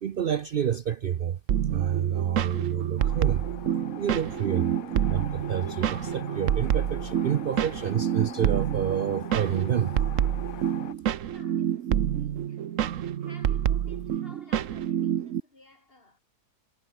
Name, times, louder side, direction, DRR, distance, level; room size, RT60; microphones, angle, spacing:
voice 1, 0.0-1.4 1.7-3.5 4.0-4.7 5.1-9.9, right 9 dB, 75° right, 0.5 m, -28 dB
sound 1, 1.5-15.4, right 10 dB, 60° right, 1.1 m, -28 dB
sound 2, 3.0-10.9, left 12 dB, 65° left, 1.1 m, -43 dB
voice 2, 11.2-16.2, left 2 dB, 35° left, 4.1 m, -55 dB
omnidirectional pair, 1.7 m